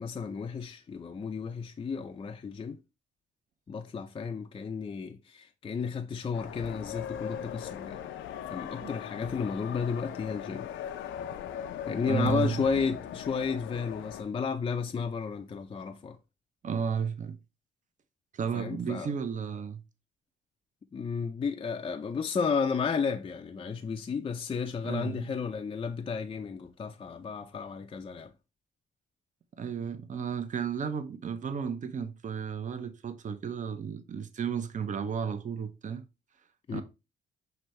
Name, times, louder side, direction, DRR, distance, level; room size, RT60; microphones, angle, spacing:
voice 1, 0.0-2.8 3.7-8.0 8.5-10.7 11.9-16.2 18.5-19.1 20.9-28.3 36.7-36.8, left 5 dB, 25° left, 0.4 m, -33 dB
sound 1, 6.3-14.2, left 9 dB, 75° left, 0.5 m, -39 dB
voice 2, 12.1-12.6 16.6-17.4 18.3-19.8 24.8-25.4 29.6-36.0 36.7-36.8, right 6 dB, 40° right, 0.6 m, -33 dB
5.9 x 2.7 x 3.1 m
cardioid pair, 90°, 20 cm